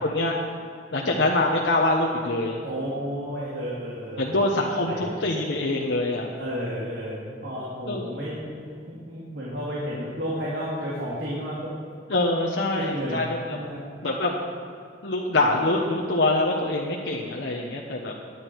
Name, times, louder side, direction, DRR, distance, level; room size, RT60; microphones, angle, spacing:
voice 1, 0.0-0.4 0.9-2.6 4.2-6.3 7.9-8.1 12.1-13.4 14.0-14.3 15.0-18.1, left 2 dB, 75° left, -1 dB, 1.2 m, -24 dB
voice 2, 2.6-4.4 4.9-5.1 6.3-8.5 8.9-11.7 12.7-13.8, equal, 75° right, -6 dB, 2.9 m, -32 dB
19.0 x 10.0 x 4.7 m, 2.4 s
head